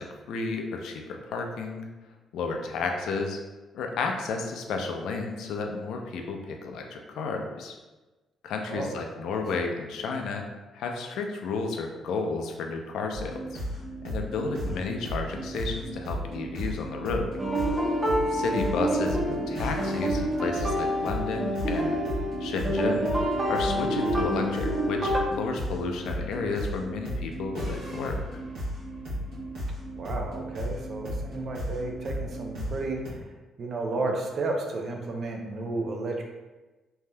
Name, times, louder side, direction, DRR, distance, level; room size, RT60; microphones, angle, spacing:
voice 1, 0.0-1.9 2.3-3.4 3.7-7.7 8.4-10.4 10.7-13.6 14.0-17.3 18.3-23.1 23.5-28.2, left 4 dB, 80° left, 3 dB, 0.4 m, -32 dB
sound 1, 13.1-33.1, equal, 85° right, 1.1 m, -35 dB
sound 2, 17.4-25.2, equal, 25° right, 0.9 m, -28 dB
voice 2, 30.0-33.0 33.6-36.2, right 2 dB, 55° right, 1 dB, 0.5 m, -32 dB
3.3 x 2.6 x 2.2 m, 1.2 s
cardioid pair, 90°, 0 cm